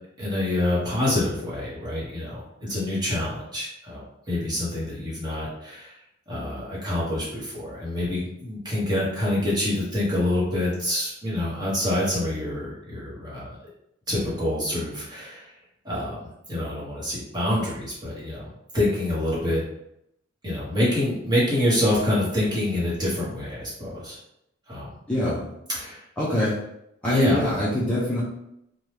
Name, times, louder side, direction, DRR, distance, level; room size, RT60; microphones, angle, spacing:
voice 1, 0.2-4.0 4.3-6.0 6.3-13.6 14.1-15.5 15.8-19.6 20.4-24.2 24.7-24.9 25.7-26.0 27.1-27.4, left 1 dB, 20° right, -7 dB, 1.1 m, -26 dB
voice 2, 25.1-25.5 26.2-26.6 27.0-28.2, left 1 dB, 5° left, -10 dB, 0.5 m, -24 dB
2.8 x 2.3 x 3.2 m, 0.80 s
head